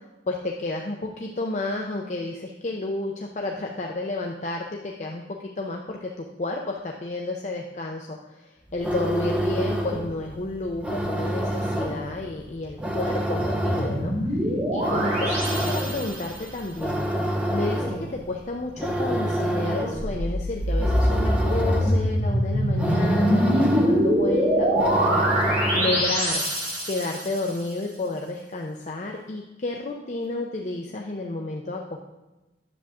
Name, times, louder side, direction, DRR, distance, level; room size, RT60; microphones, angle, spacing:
voice 1, 0.3-14.4 14.7-17.0 17.5-25.4 25.7-26.4 26.8-32.0, left 2 dB, 40° left, 1 dB, 0.6 m, -31 dB
sound 1, 8.7-26.1, equal, 5° right, 1.0 m, -28 dB
sound 2, 13.3-16.4 19.8-27.4, equal, 40° right, 3.4 m, -24 dB
10.0 x 7.2 x 3.6 m, 1.1 s
head